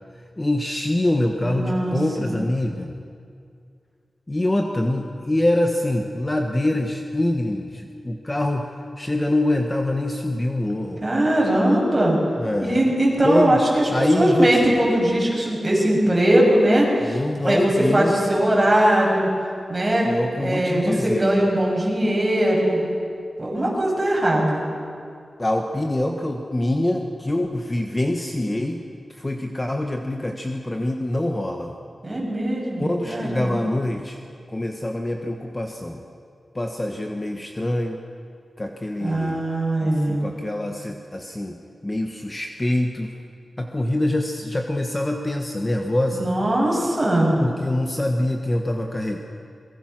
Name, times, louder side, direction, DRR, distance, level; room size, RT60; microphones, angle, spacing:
voice 1, 0.4-2.9 4.3-8.7 9.0-11.0 12.4-12.9 13.2-13.6 13.9-14.6 17.0-18.2 20.0-21.3 25.4-28.8 29.1-31.7 32.8-34.2 34.5-36.0 36.5-38.0 38.6-39.4 39.8-41.6 41.8-43.1 43.6-46.3 47.4-49.2, left 1 dB, 20° left, 3 dB, 1.4 m, -24 dB
voice 2, 1.4-2.3 11.0-12.2 12.6-19.3 19.7-20.1 20.4-22.8 23.4-24.6 32.0-33.7 39.0-40.3 46.1-47.3, right 1 dB, 25° right, -3 dB, 7.2 m, -20 dB
26.5 x 22.0 x 6.2 m, 2.3 s
wide cardioid pair, 105°, 0 cm